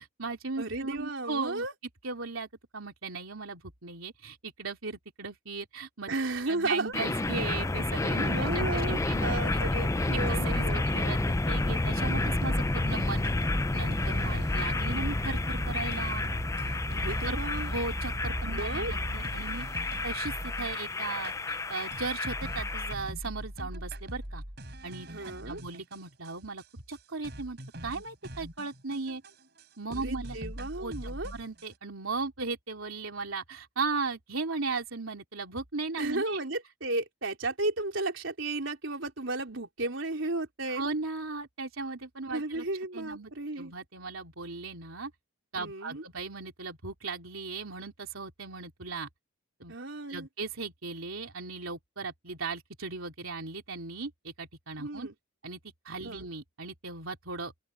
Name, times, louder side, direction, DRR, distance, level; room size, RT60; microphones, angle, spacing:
voice 1, 0.0-1.6 2.0-6.1 6.5-9.6 10.1-13.2 13.7-16.2 17.2-17.4 17.7-19.7 20.0-24.4 24.8-29.2 29.8-30.4 30.8-36.4 40.7-42.6 42.9-43.3 43.6-45.1 45.5-49.1 49.6-49.7 50.1-55.1 55.4-55.6 55.8-57.5, right 4 dB, 85° right, 3.0 m, -37 dB
voice 2, 0.6-1.7 6.1-6.9 8.3-10.8 16.9-17.7 18.4-18.9 25.1-25.6 29.9-31.3 36.0-40.8 42.3-43.7 45.6-46.0 49.7-50.3 54.8-55.1 56.0-56.2, right 2 dB, 65° right, 4.1 m, -34 dB
sound 1, 6.9-22.9, left 2 dB, 15° left, 0.4 m, -30 dB
sound 2, 11.9-20.8 21.2-21.3 21.9-26.3 26.6-26.7 26.9-27.0 27.2-29.6 29.9-31.6, equal, 50° right, 5.7 m, -38 dB
open air
head